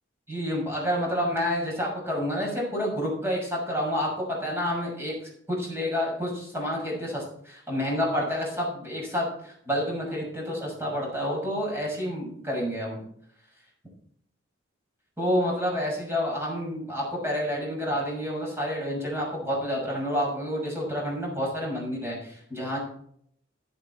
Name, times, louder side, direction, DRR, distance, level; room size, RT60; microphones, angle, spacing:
voice 1, 0.3-4.1 4.4-5.1 5.5-13.0 15.2-22.8, equal, 15° right, -2 dB, 6.3 m, -29 dB
12.0 x 11.0 x 4.2 m, 0.66 s
head